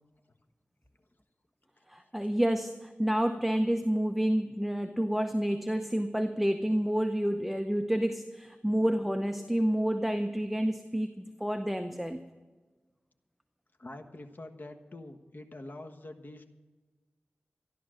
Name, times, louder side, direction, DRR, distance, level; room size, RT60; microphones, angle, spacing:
voice 1, 1.9-12.2, equal, 5° right, 7 dB, 0.7 m, -29 dB
voice 2, 13.8-16.5, left 2 dB, 55° left, 6 dB, 1.3 m, -45 dB
13.5 x 11.5 x 6.4 m, 1.3 s
wide cardioid pair, 80°, 4 cm